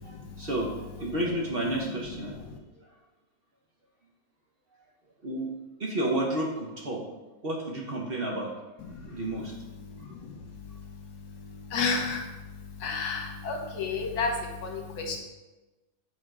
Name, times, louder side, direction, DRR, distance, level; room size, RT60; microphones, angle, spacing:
voice 1, 0.0-2.4 2.8-2.9 5.2-5.5 5.8-7.0 7.4-8.6 9.1-9.5, right 1 dB, 45° right, -2 dB, 1.0 m, -31 dB
voice 2, 11.7-12.2 12.8-14.3 14.6-15.2, left 4 dB, 70° left, 2 dB, 1.5 m, -30 dB
7.9 x 3.9 x 4.8 m, 1.1 s
omnidirectional pair, 1.7 m